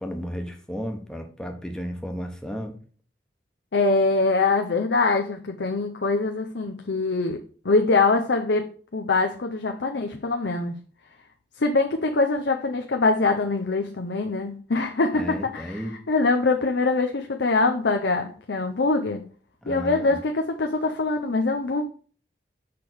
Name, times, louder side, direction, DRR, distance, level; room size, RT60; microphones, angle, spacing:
voice 1, 0.0-2.7 15.1-16.0 19.6-20.2, equal, 5° left, 4 dB, 1.0 m, -33 dB
voice 2, 3.7-7.4 7.6-10.8 11.6-15.8 16.1-19.2 19.7-21.8, left 3 dB, 80° left, 3 dB, 0.7 m, -23 dB
6.7 x 3.5 x 6.0 m, 0.42 s
head